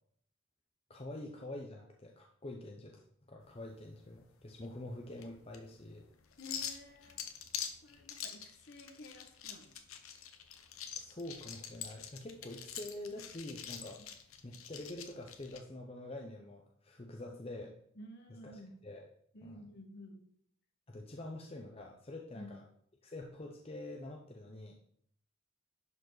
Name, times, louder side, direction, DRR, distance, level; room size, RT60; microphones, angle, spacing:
voice 1, 0.9-6.0 11.0-14.0 14.4-17.8 18.5-19.0 19.5-19.6 20.9-22.6 23.0-24.8, left 1 dB, 30° left, 1 dB, 0.8 m, -46 dB
sound 1, 3.4-15.6, left 8 dB, 90° left, 1.0 m, -46 dB
voice 2, 6.4-7.2 7.8-9.7 17.9-18.8 19.3-20.2 22.3-22.5, left 1 dB, 55° left, 4 dB, 1.5 m, -52 dB
11.0 x 5.2 x 4.0 m, 0.66 s
head